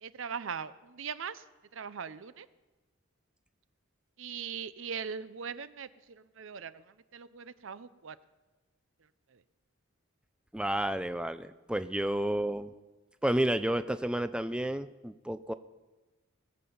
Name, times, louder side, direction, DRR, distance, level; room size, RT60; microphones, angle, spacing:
voice 1, 0.0-1.4 1.7-2.5 4.2-5.9 6.4-6.8 7.1-8.2, right 6 dB, 65° right, 15 dB, 0.6 m, -40 dB
voice 2, 10.5-12.7 13.2-15.5, right 1 dB, 5° right, 12 dB, 0.4 m, -31 dB
20.0 x 7.6 x 7.0 m, 1.2 s
head